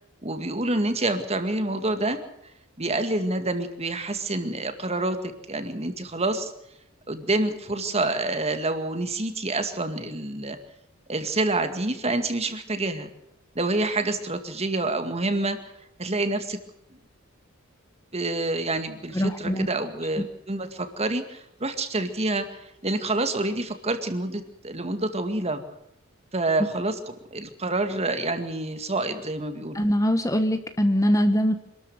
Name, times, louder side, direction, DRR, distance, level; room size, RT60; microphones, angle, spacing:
voice 1, 0.2-2.2 2.8-6.5 7.1-10.6 11.1-13.1 13.6-15.6 16.0-16.6 18.1-25.6 26.3-29.8, right 2 dB, 30° right, 8 dB, 2.2 m, -27 dB
voice 2, 19.1-19.7 29.7-31.5, equal, 15° left, 8 dB, 1.2 m, -22 dB
26.5 x 13.0 x 7.9 m, 0.82 s
head